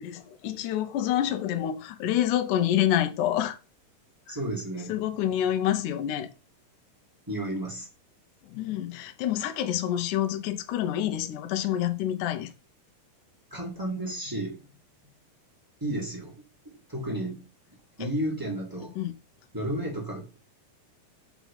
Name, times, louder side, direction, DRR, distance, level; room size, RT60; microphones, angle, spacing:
voice 1, 0.0-3.6 4.3-4.4 4.9-6.3 8.4-12.5 18.0-18.1 19.0-19.1, left 11 dB, 75° left, 2.1 m, -27 dB
voice 2, 4.3-4.9 7.3-7.9 13.5-14.6 15.8-16.3 16.9-17.4 18.0-18.9 19.5-20.3, right 1 dB, 10° right, 1.2 m, -32 dB
5.9 x 4.0 x 5.4 m
omnidirectional pair, 4.2 m